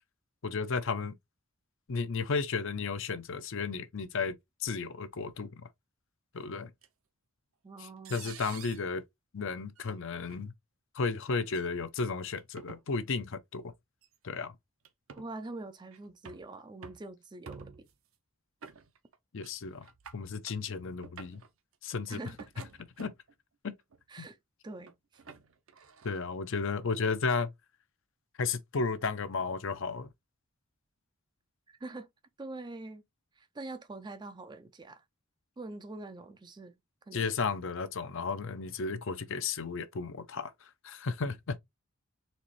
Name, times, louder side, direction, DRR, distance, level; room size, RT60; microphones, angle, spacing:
voice 1, 0.4-1.1 1.9-4.4 4.6-5.5 6.3-6.7 7.8-9.0 9.3-10.5 10.9-13.7 14.2-14.5 19.3-19.9 20.1-21.4 21.8-22.2 23.0-23.1 23.6-23.7 24.2-24.3 26.0-27.5 28.4-30.1 37.1-41.6, left 4 dB, 60° left, 0.6 m, -33 dB
sound 1, 6.8-6.9 8.0-8.9 9.8-9.9 10.3-10.4 11.4-11.7 12.4-12.8 14.0-14.1 14.8-15.3 15.9-16.5 16.8-17.1 17.5-18.0 18.6-19.2 19.4-19.5 19.8-20.6 21.0-21.5 22.3-23.3 23.9-24.3 24.9-26.2, right 6 dB, 60° right, 0.6 m, -49 dB
voice 2, 7.6-8.3 15.2-17.9 22.1-22.4 24.1-24.4 24.6-24.9 31.7-32.1 32.4-33.0 33.4-35.0 35.6-36.8 37.1-37.3, right 2 dB, 20° right, 0.4 m, -44 dB
4.2 x 3.0 x 3.0 m
head